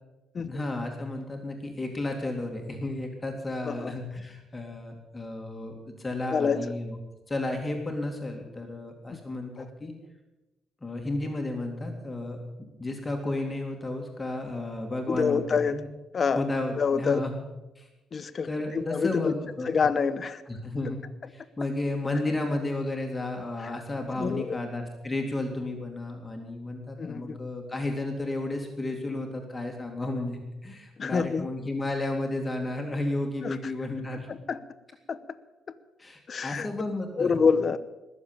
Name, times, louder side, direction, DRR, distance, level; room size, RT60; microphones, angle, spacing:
voice 1, 0.4-7.0 7.3-9.9 10.8-12.4 12.8-15.9 16.4-17.3 17.8-17.9 18.5-19.7 20.5-34.3 36.0-37.4, left 2 dB, 15° left, 2 dB, 2.3 m, -33 dB
voice 2, 6.3-6.6 9.1-9.2 9.6-9.7 15.1-15.8 16.1-16.5 16.8-17.2 18.1-19.4 19.6-20.4 23.6-23.7 24.2-24.6 27.0-27.4 31.0-31.5 33.4-33.6 34.1-34.6 35.1-35.2 36.3-36.7 37.2-37.8, left 5 dB, 40° left, 13 dB, 0.9 m, -27 dB
20.5 x 7.4 x 8.8 m, 1.0 s
cardioid pair, 125°, 0 cm